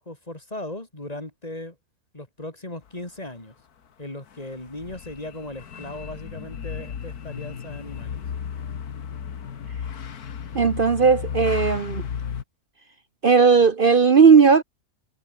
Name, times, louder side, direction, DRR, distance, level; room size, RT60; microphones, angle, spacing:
voice 1, 0.0-1.7 2.1-3.5 4.0-8.2, left 1 dB, 25° left, 3.5 m, -37 dB
sound 1, 4.3-12.4, left 7 dB, 75° left, 1.9 m, -34 dB
voice 2, 10.5-12.0 13.2-14.6, right 5 dB, 45° right, 0.8 m, -16 dB
omnidirectional pair, 1.6 m